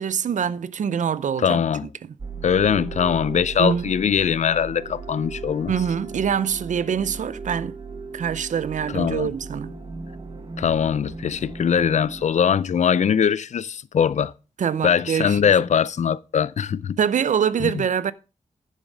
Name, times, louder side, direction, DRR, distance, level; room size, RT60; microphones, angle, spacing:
voice 1, 0.0-1.6 3.6-3.8 5.7-7.8 8.1-9.7 14.6-15.4 17.0-18.1, right 7 dB, 85° right, 0.5 m, -24 dB
voice 2, 1.4-1.9 2.4-5.7 8.9-9.3 10.6-14.3 14.8-17.0 17.6-17.8, left 7 dB, 70° left, 0.5 m, -21 dB
sound 1, 2.2-12.3, right 4 dB, 45° right, 1.4 m, -37 dB
10.0 x 7.2 x 5.2 m
wide cardioid pair, 145°, 12 cm